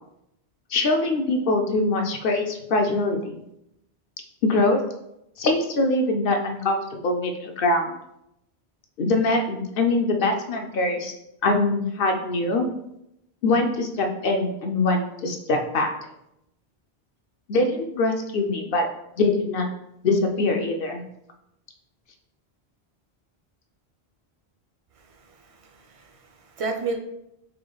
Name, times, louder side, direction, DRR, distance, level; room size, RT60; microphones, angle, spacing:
voice 1, 0.7-3.4 4.4-4.8 5.4-7.9 9.0-11.1 11.4-12.6 13.4-15.9 17.5-18.8 19.2-19.7 20.0-21.0, left 2 dB, 65° left, 4 dB, 0.7 m, -23 dB
voice 2, 25.0-26.9, right 4 dB, 45° right, 4 dB, 0.5 m, -33 dB
3.6 x 3.2 x 3.8 m, 0.82 s
omnidirectional pair, 1.1 m